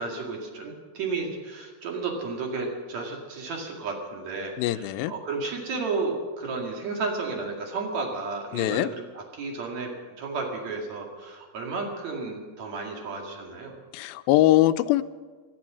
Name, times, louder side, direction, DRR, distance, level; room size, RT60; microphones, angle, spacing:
voice 1, 0.0-9.9 10.2-13.7, right 4 dB, 55° right, 1 dB, 3.1 m, -32 dB
voice 2, 4.6-5.1 8.5-8.9 13.9-15.0, left 15 dB, 90° left, 13 dB, 2.4 m, -22 dB
17.0 x 13.0 x 6.2 m, 1.4 s
omnidirectional pair, 4.1 m